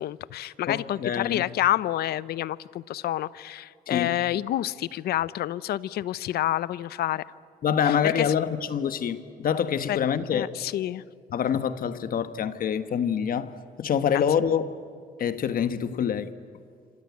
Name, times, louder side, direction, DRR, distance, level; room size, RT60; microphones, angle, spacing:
voice 1, 0.0-7.2 7.8-8.3 9.9-10.0 10.3-11.0 14.1-14.2, left 13 dB, 85° left, 0.6 m, -28 dB
voice 2, 0.7-1.4 3.9-4.2 7.6-10.5 11.3-13.5 13.8-14.8 15.2-16.3, left 8 dB, 65° left, 1.4 m, -26 dB
27.5 x 25.5 x 8.4 m
cardioid pair, 90°, 16 cm